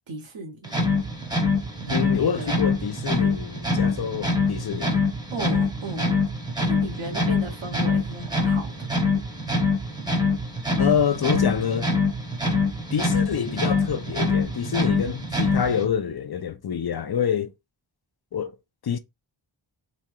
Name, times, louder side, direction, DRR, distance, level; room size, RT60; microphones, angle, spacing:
voice 1, 0.1-1.0 1.8-2.5 5.3-6.2 6.7-8.7 9.0-9.2, right 2 dB, 70° right, 0.8 m, -36 dB
sound 1, 0.6-15.9, left 3 dB, 10° right, 0.8 m, -24 dB
voice 2, 1.9-5.0 10.8-11.9 12.9-17.5 18.3-18.5 18.8-19.0, left 8 dB, 55° left, 0.5 m, -26 dB
3.1 x 2.7 x 2.3 m
wide cardioid pair, 40°, 48 cm